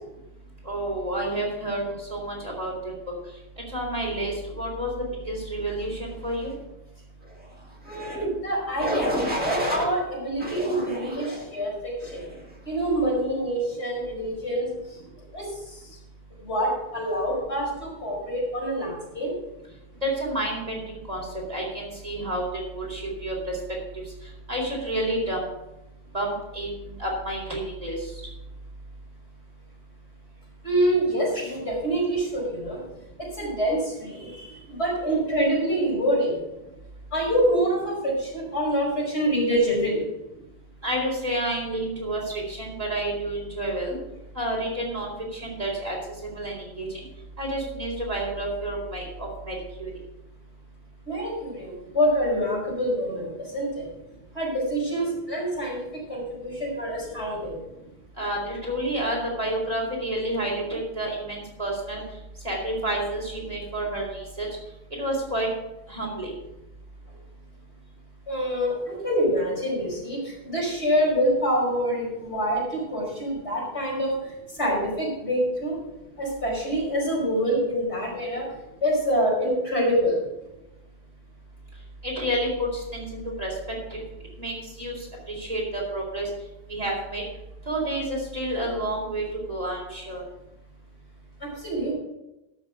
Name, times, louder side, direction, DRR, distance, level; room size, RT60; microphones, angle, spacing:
voice 1, 0.7-2.7 3.7-4.9 5.3-6.5 20.0-20.8 21.1-21.2 21.5-22.5 22.7-23.4 24.5-25.5 26.1-28.1 40.8-44.0 44.3-46.0 46.3-47.1 47.4-49.9 58.2-62.0 62.4-64.5 65.0-65.5 65.9-66.3 82.0-83.5 83.9-84.0 84.4-86.3 86.7-87.2 87.7-90.2, right 1 dB, 35° right, -3 dB, 3.9 m, -29 dB
voice 2, 7.8-9.1 9.4-12.3 12.7-14.7 15.3-15.8 16.4-19.3 30.6-32.8 33.3-36.4 37.1-40.0 51.1-53.9 54.3-55.8 56.1-57.6 68.3-74.1 74.6-75.8 76.2-78.5 78.8-80.2 91.4-91.9, equal, 85° left, -4 dB, 5.5 m, -26 dB
sound 1, 7.9-8.2 8.8-9.9 10.4-11.4 12.0-12.4, equal, 10° right, 1.9 m, -29 dB
12.5 x 6.5 x 6.0 m, 0.96 s
omnidirectional pair, 1.1 m